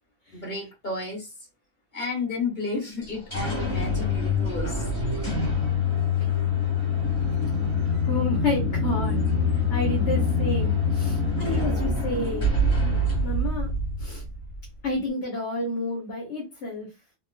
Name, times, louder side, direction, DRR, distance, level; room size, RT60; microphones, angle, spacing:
voice 1, 0.3-1.3 1.9-4.8, left 3 dB, 40° left, 1.6 m, -32 dB
sound 1, 3.0-14.7, left 3 dB, 25° left, 1.5 m, -25 dB
voice 2, 7.8-9.3 9.7-12.5 12.8-13.7 14.0-14.2 14.8-16.9, left 2 dB, 70° left, 1.3 m, -30 dB
3.7 x 2.2 x 2.3 m
omnidirectional pair, 1.2 m